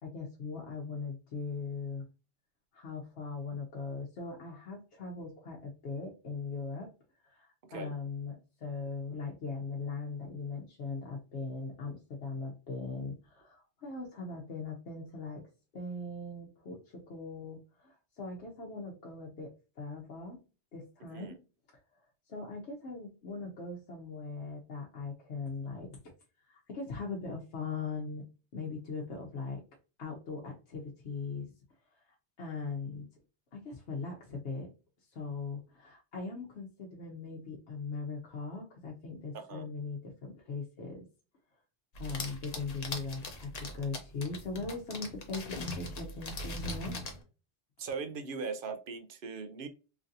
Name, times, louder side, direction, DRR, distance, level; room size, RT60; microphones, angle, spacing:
voice 1, 0.0-2.1 2.7-6.9 7.2-15.5 15.7-20.4 20.7-21.4 21.9-26.1 26.4-28.2 28.5-29.6 30.0-31.5 31.9-32.0 32.4-33.1 33.5-34.7 35.1-41.1 42.0-47.0, left 4 dB, 80° left, -2 dB, 1.0 m, -40 dB
voice 2, 39.3-39.7 47.8-49.7, right 4 dB, 60° right, 8 dB, 0.7 m, -39 dB
sound 1, 41.9-47.2, left 2 dB, 40° left, 0.7 m, -40 dB
3.2 x 2.6 x 2.5 m, 0.33 s
omnidirectional pair, 1.1 m